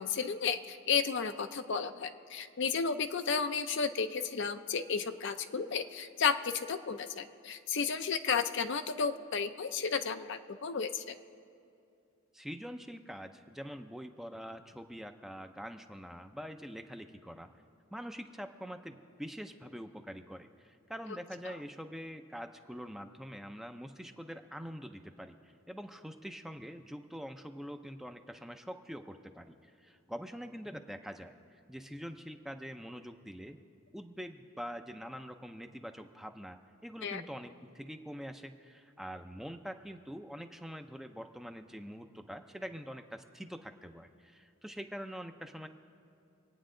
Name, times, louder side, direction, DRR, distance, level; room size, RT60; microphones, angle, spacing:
voice 1, 0.0-11.1 21.5-21.6 37.0-37.2, left 6 dB, 65° left, 9 dB, 0.6 m, -33 dB
voice 2, 12.3-17.5 17.9-31.3 31.7-33.6 33.9-36.6 36.8-45.7, equal, ahead, 6 dB, 0.5 m, -45 dB
25.5 x 9.2 x 3.8 m, 2.5 s
head